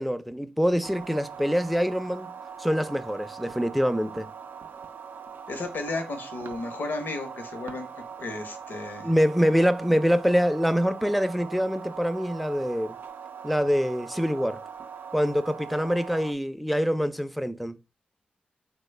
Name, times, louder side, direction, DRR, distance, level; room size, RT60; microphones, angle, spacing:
voice 1, 0.0-2.3 2.6-4.3 9.0-13.0 13.4-14.6 15.1-17.8, equal, ahead, 0.4 m, -25 dB
sound 1, 0.8-16.3, right 6 dB, 75° right, 0.4 m, -41 dB
voice 2, 5.5-7.9 8.2-9.1, left 3 dB, 75° left, 0.8 m, -33 dB
3.4 x 2.2 x 3.2 m
cardioid pair, 45°, 3 cm